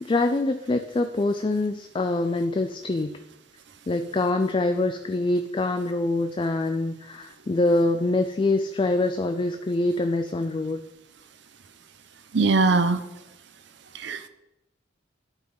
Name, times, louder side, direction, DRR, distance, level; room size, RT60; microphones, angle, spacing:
voice 1, 0.0-3.2 3.9-10.8, left 2 dB, 25° left, 6 dB, 0.4 m, -25 dB
voice 2, 12.3-13.0 14.0-14.3, right 3 dB, 60° right, 12 dB, 0.6 m, -21 dB
11.5 x 4.0 x 5.4 m, 0.93 s
head